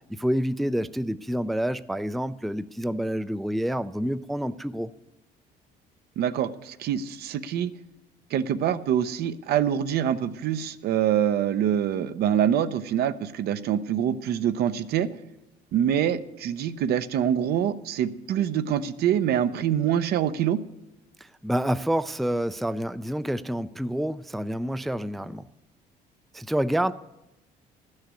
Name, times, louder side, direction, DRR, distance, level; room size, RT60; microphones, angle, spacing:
voice 1, 0.1-4.9 21.2-25.5 26.3-26.9, equal, ahead, 13 dB, 0.3 m, -28 dB
voice 2, 6.2-7.7 8.3-15.1 15.7-20.6, right 9 dB, 70° right, 12 dB, 0.7 m, -25 dB
12.5 x 6.5 x 8.3 m, 0.94 s
cardioid pair, 110°, 17 cm